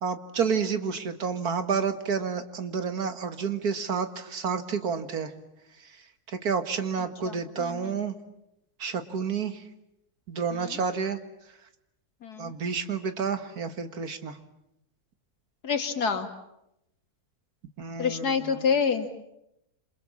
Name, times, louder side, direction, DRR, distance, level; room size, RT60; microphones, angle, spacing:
voice 1, 0.0-5.3 5.8-8.2 8.8-9.6 10.3-11.2 12.4-14.4 17.8-18.6, right 6 dB, 75° right, 9 dB, 2.3 m, -30 dB
voice 2, 7.2-7.9 10.5-10.8 12.2-12.5 15.6-16.3 18.0-19.2, left 6 dB, 85° left, 7 dB, 2.7 m, -28 dB
28.0 x 27.0 x 7.3 m, 0.82 s
omnidirectional pair, 1.6 m